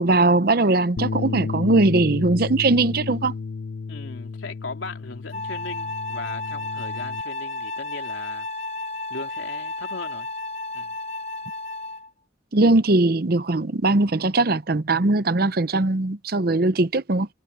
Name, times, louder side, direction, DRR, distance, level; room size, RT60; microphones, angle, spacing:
voice 1, 0.0-3.3 12.5-17.3, right 2 dB, 50° right, 0.8 m, -20 dB
Bass guitar, 1.0-7.2, left 4 dB, 55° left, 0.4 m, -32 dB
voice 2, 3.9-8.5 9.1-10.3 10.7-11.0, left 3 dB, 85° left, 3.1 m, -38 dB
Wind instrument woodwind instrument, 5.3-12.1, left 2 dB, 35° left, 3.0 m, -32 dB
head